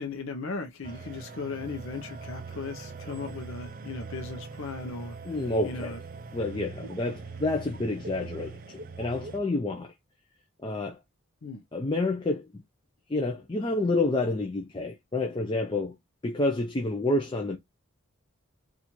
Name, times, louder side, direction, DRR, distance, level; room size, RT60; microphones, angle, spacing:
voice 1, 0.0-6.0 11.4-11.6, left 4 dB, 70° left, 0.6 m, -37 dB
sound 1, 0.8-9.4, right 4 dB, 40° right, 0.4 m, -42 dB
voice 2, 5.3-6.0 6.3-9.9 10.6-11.0 11.7-12.6 13.1-15.9 16.2-17.6, left 2 dB, 25° left, 0.4 m, -29 dB
4.2 x 2.4 x 2.9 m
head